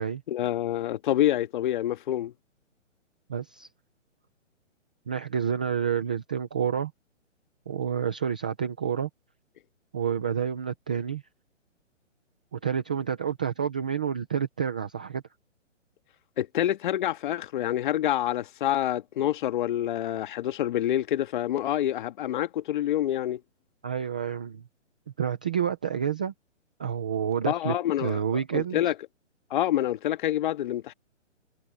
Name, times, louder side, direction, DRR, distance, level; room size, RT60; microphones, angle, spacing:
voice 1, 0.3-2.3 16.4-23.4 27.5-28.2 28.5-28.9 29.5-30.9, left 12 dB, 40° left, 1.7 m, -27 dB
voice 2, 3.3-3.7 5.1-6.9 7.7-9.1 9.9-11.2 12.5-15.2 23.8-24.6 25.2-26.3 26.8-28.8, right 8 dB, 5° right, 0.4 m, -29 dB
hypercardioid pair, 145°, 38 cm